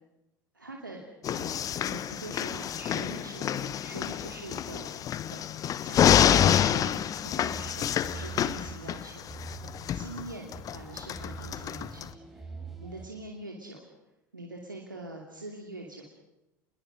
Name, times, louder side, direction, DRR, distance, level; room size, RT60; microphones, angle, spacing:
voice 1, 0.5-1.0 1.3-5.4 5.8-9.6 9.9-12.5 12.8-13.8 14.3-16.0, right 2 dB, 85° right, 0 dB, 2.8 m, -44 dB
sound 1, 1.2-12.1, left 10 dB, 35° left, 1.0 m, -27 dB
sound 2, 6.9-13.1, right 4 dB, ahead, 6.5 m, -45 dB
28.0 x 21.5 x 6.3 m, 0.92 s
figure-of-eight pair, 70°, 10 cm